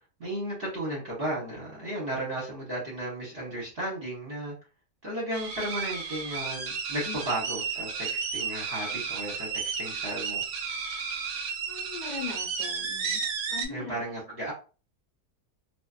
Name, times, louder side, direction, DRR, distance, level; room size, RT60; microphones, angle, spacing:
voice 1, 0.2-4.5 5.0-10.4 13.7-14.5, right 1 dB, 45° right, -5 dB, 1.0 m, -34 dB
sound 1, 5.3-13.7, right 5 dB, 70° right, 1.0 m, -33 dB
voice 2, 11.7-14.0, left 5 dB, 40° left, -5 dB, 0.8 m, -40 dB
2.5 x 2.5 x 2.3 m, 0.35 s
omnidirectional pair, 1.7 m